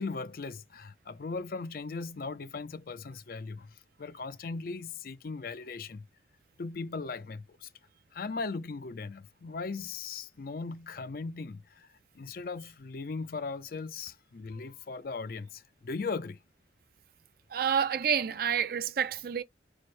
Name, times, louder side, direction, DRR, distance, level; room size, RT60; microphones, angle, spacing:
voice 1, 0.0-6.0 6.6-7.7 8.1-11.9 12.1-16.4, left 4 dB, 55° left, 0.4 m, -38 dB
voice 2, 17.5-19.4, right 7 dB, 55° right, 0.5 m, -28 dB
4.8 x 2.1 x 4.2 m
head